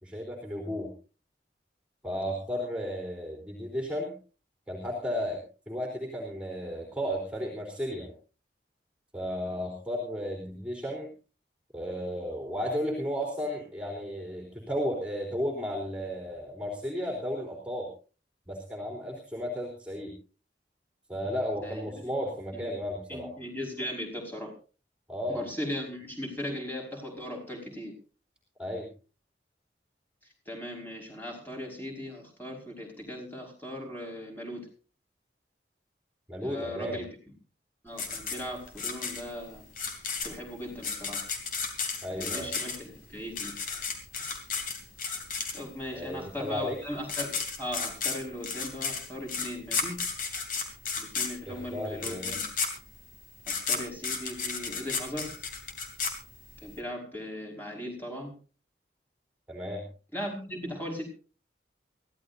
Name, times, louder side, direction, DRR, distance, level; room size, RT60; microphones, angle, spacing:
voice 1, 0.0-0.9 2.0-4.1 4.7-8.1 9.1-11.1 11.7-17.9 18.5-20.1 21.1-23.3 25.1-25.4 28.6-28.9 36.3-37.0 42.0-42.5 45.9-46.8 51.5-52.3 59.5-59.8, equal, 5° right, 1 dB, 3.8 m, -34 dB
voice 2, 21.6-22.0 22.5-22.7 23.1-24.5 25.3-27.9 30.5-34.7 36.4-37.1 37.8-39.6 40.2-41.2 42.1-43.9 44.2-44.4 45.5-50.1 51.0-52.4 53.5-55.3 56.6-58.3 60.1-61.1, left 1 dB, 10° left, 0 dB, 5.3 m, -38 dB
sound 1, 38.0-45.9 46.7-46.8 47.0-56.7, left 5 dB, 50° left, 3.3 m, -33 dB
23.0 x 16.0 x 2.7 m, 0.36 s
head